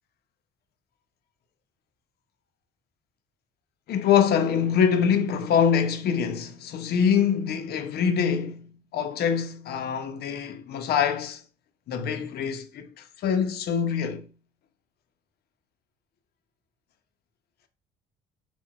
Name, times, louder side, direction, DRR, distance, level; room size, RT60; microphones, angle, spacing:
voice 1, 3.9-8.7 8.9-11.4 11.9-14.2, left 7 dB, 55° left, 0.5 m, -24 dB
3.7 x 2.1 x 2.2 m
cardioid pair, 90°, 19 cm